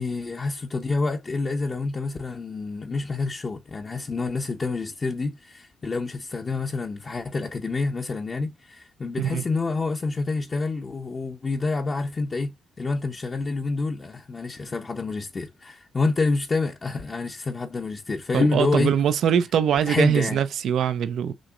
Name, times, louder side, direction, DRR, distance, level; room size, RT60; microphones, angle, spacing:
voice 1, 0.0-18.9 19.9-20.4, left 3 dB, 35° left, 0.8 m, -27 dB
voice 2, 18.3-21.3, right 9 dB, 70° right, 0.6 m, -22 dB
6.2 x 2.8 x 2.5 m
supercardioid pair, 60°, 0 cm